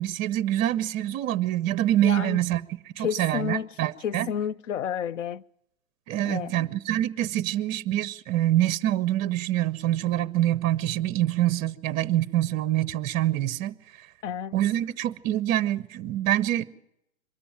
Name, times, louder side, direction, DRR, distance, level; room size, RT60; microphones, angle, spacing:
voice 1, 0.0-2.6 3.0-4.3 6.1-13.8 14.5-16.6, right 13 dB, 25° right, 0.7 m, -25 dB
voice 2, 2.0-2.4 3.0-3.7 4.0-5.4 6.2-6.5 14.2-14.5, left 8 dB, 65° left, 0.7 m, -30 dB
23.0 x 13.5 x 8.7 m
hypercardioid pair, 125°, 41 cm